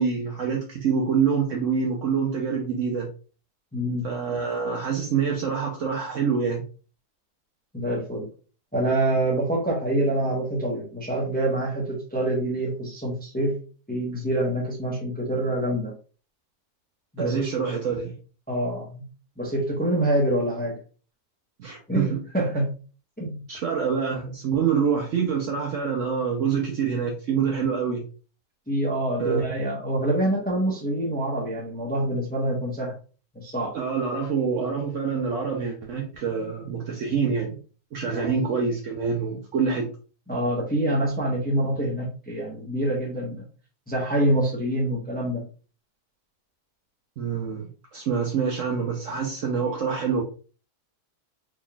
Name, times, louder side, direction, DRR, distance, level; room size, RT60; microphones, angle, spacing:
voice 1, 0.0-3.1 4.0-6.7 17.2-18.2 21.6-22.2 23.5-28.1 29.2-29.4 33.7-37.6 37.9-39.9 47.2-50.2, right 6 dB, 60° right, 1 dB, 0.9 m, -26 dB
voice 2, 3.7-4.1 7.7-8.3 8.7-13.6 13.9-15.9 17.1-17.5 18.5-19.1 19.4-20.8 21.9-22.7 23.2-23.4 28.7-33.0 33.3-33.8 38.1-38.3 40.3-43.4 43.9-45.4, right 1 dB, 10° left, -3 dB, 0.7 m, -26 dB
4.0 x 3.5 x 2.3 m, 0.37 s
omnidirectional pair, 1.6 m